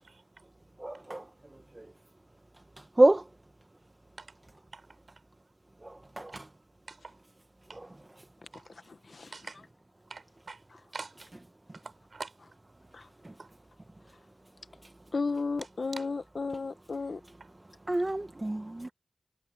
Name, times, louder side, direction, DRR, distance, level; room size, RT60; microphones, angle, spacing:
voice 1, 0.8-1.2 3.0-3.2 6.2-6.3 17.9-18.9, right 1 dB, 25° right, 1.1 m, -25 dB
voice 2, 8.7-9.3 12.9-13.1 15.1-17.2, left 4 dB, 60° left, 1.4 m, -34 dB
voice 3, 10.1-10.6 10.9-11.3 11.7-12.3 13.4-13.5 15.9-16.1, right 4 dB, 60° right, 6.4 m, -44 dB
cardioid pair, 60°, 0 cm